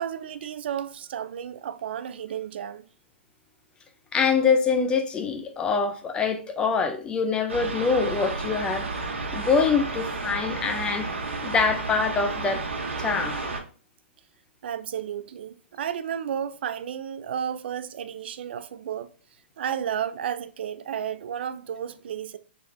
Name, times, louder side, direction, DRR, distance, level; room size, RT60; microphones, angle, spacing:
voice 1, 0.0-2.8 14.6-19.1 19.6-22.4, right 9 dB, 60° right, 0.3 m, -32 dB
voice 2, 4.1-8.9 9.3-11.1 11.4-12.6 13.0-13.4, left 5 dB, 15° left, 0.4 m, -24 dB
sound 1, 7.5-13.6, right 3 dB, 80° right, 1.1 m, -32 dB
4.0 x 3.1 x 2.6 m
hypercardioid pair, 140°, 7 cm